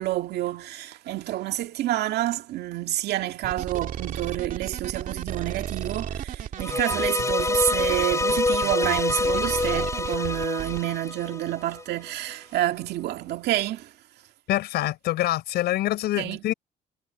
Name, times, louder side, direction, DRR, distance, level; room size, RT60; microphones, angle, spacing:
voice 1, 0.0-13.9 16.2-16.4, right 14 dB, 75° right, 2.2 m, -28 dB
sound 1, 3.4-10.8, right 9 dB, 50° right, 2.5 m, -34 dB
sound 2, 6.6-11.8, left 3 dB, 20° left, 4.9 m, -26 dB
voice 2, 14.5-16.5, left 15 dB, 75° left, 4.8 m, -25 dB
cardioid pair, 110°, 17 cm